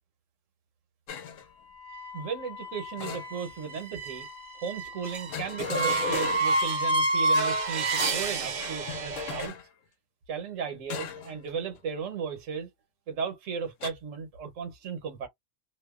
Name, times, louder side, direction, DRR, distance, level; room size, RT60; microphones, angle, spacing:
sound 1, 1.1-1.4 3.0-3.7 5.3-6.7 7.9-9.6 10.9-11.4 11.7-12.0 13.8-13.9, left 7 dB, 85° left, 1.0 m, -36 dB
sound 2, 1.8-9.5, right 2 dB, 50° right, 0.6 m, -30 dB
voice 1, 2.1-4.3 4.6-9.6 10.3-12.7 13.1-15.3, right 6 dB, 90° right, 1.2 m, -35 dB
2.6 x 2.1 x 2.3 m
omnidirectional pair, 1.3 m